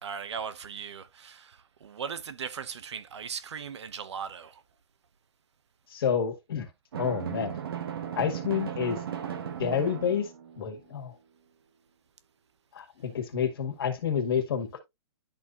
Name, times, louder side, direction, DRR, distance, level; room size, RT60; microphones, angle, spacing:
voice 1, 0.0-4.6, right 7 dB, 75° right, 0.9 m, -38 dB
voice 2, 5.9-6.7 7.0-7.6 8.1-9.0 9.6-10.3 10.6-11.2 12.7-14.8, left 7 dB, 55° left, 2.0 m, -29 dB
Drum, 6.9-10.7, right 9 dB, 55° right, 1.2 m, -36 dB
11.5 x 4.2 x 2.5 m
hypercardioid pair, 170°, 15 cm